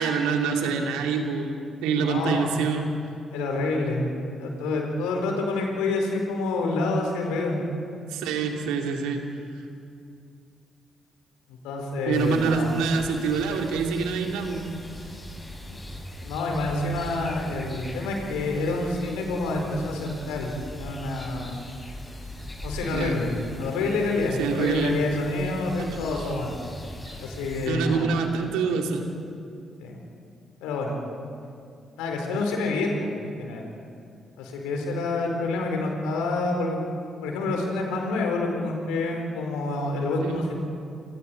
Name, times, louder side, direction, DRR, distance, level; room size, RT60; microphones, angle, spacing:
voice 1, 0.0-2.9 8.1-9.2 12.0-14.7 22.9-23.2 24.4-25.0 25.8-26.0 27.0-27.2 27.7-29.1 40.2-40.4, right 5 dB, 70° right, 2 dB, 2.5 m, -26 dB
voice 2, 2.0-2.5 3.3-4.1 4.4-7.6 11.5-12.7 15.7-15.8 16.2-21.6 22.6-23.3 23.6-26.5 27.2-28.1 29.8-30.0 30.6-31.0 32.0-33.1 33.4-33.6 34.4-36.8 37.2-40.5, left 2 dB, 70° left, 1 dB, 4.2 m, -27 dB
sound 1, 12.1-27.7, equal, 15° left, 7.2 m, -40 dB
28.0 x 27.0 x 4.6 m, 2.4 s
figure-of-eight pair, 40°, 0 cm